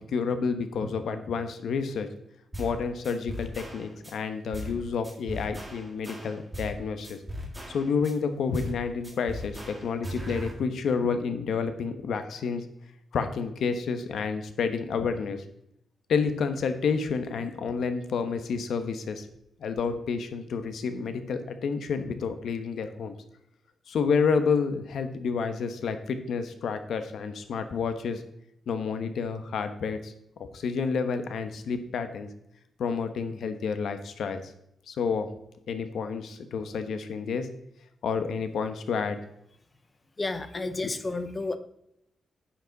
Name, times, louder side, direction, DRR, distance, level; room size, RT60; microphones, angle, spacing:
voice 1, 0.0-2.1 2.6-7.2 7.7-12.6 13.1-15.4 16.1-19.3 19.6-23.2 23.9-28.2 28.7-30.1 30.5-32.3 32.8-34.4 34.9-35.3 35.7-37.5 38.0-39.2 40.6-40.9, left 5 dB, 70° left, 9 dB, 1.1 m, -29 dB
sound 1, 2.5-2.8 3.0-4.1 4.5-4.8 5.0-6.8 7.0-8.1 8.5-8.8 9.0-10.5, equal, 10° right, 1.8 m, -38 dB
voice 2, 40.2-41.6, left 3 dB, 20° left, 10 dB, 0.8 m, -31 dB
10.5 x 7.2 x 4.0 m, 0.77 s
wide cardioid pair, 155°, 0 cm